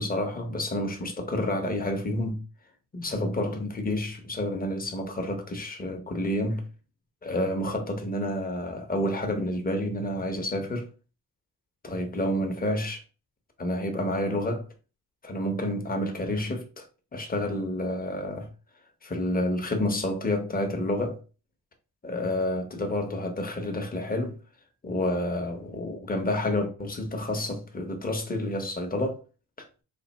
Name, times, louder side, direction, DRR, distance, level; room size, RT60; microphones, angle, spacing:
voice 1, 0.0-2.4 2.9-6.7 7.2-10.9 11.8-13.0 13.6-14.7 15.2-16.9 17.1-18.5 19.0-21.2 22.0-24.4 24.8-29.2 29.6-29.7, left 1 dB, 25° left, 0.9 m, -29 dB
3.4 x 2.4 x 4.1 m
wide cardioid pair, 125°, 38 cm